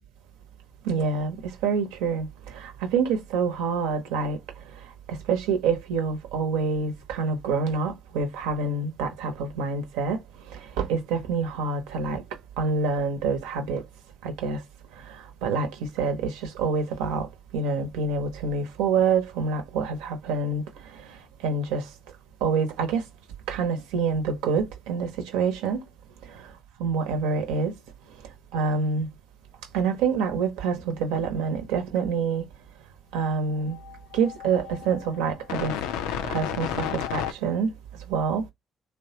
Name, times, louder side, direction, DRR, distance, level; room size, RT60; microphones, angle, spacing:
voice 1, 0.8-2.3 2.5-4.4 5.1-10.2 10.5-12.2 12.6-13.8 14.2-14.6 15.4-17.3 17.5-20.6 21.4-21.8 22.4-23.0 23.5-25.8 26.8-27.7 28.5-29.1 29.7-32.5 33.1-33.8 34.1-35.7 36.2-37.7 38.1-38.5, right 5 dB, 80° right, 0.9 m, -26 dB
sound 1, 33.5-37.3, left 9 dB, 80° left, 0.4 m, -32 dB
3.2 x 2.2 x 2.8 m
hypercardioid pair, 45°, 0 cm